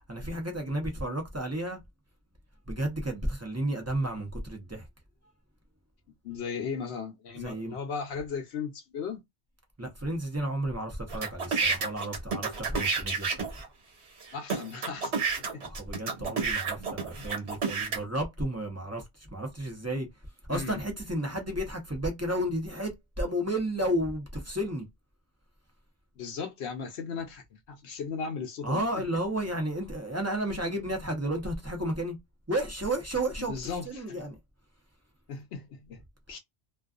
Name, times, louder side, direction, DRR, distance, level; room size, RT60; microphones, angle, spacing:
voice 1, 0.1-1.8 2.7-4.9 7.4-7.7 9.8-13.5 15.6-19.0 19.3-20.1 20.5-22.9 23.2-24.9 28.6-32.2 32.5-34.3, right 1 dB, 15° right, 0.6 m, -32 dB
voice 2, 6.2-9.2 14.3-15.1 15.4-15.7 20.5-20.8 26.2-28.8 33.4-34.2 35.3-36.0 36.3-36.4, left 6 dB, 75° left, 0.9 m, -36 dB
sound 1, 11.1-13.7 14.2-14.3 14.5-18.0, right 5 dB, 75° right, 1.3 m, -30 dB
2.3 x 2.3 x 2.4 m
omnidirectional pair, 1.1 m